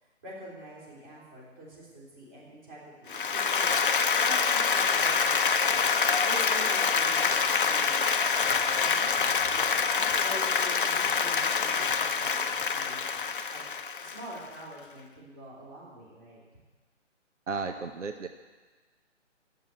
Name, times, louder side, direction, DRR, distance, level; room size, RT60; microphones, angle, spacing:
voice 1, 0.2-3.9 4.2-5.9 6.2-8.0 8.4-13.6 14.0-16.4, right 1 dB, 25° right, -5 dB, 3.5 m, -45 dB
Applause, 3.1-14.4, left 5 dB, 45° left, 0.7 m, -26 dB
voice 2, 17.5-18.3, right 4 dB, 75° right, 7 dB, 1.0 m, -33 dB
10.5 x 7.8 x 9.5 m, 1.3 s
hypercardioid pair, 160°, 37 cm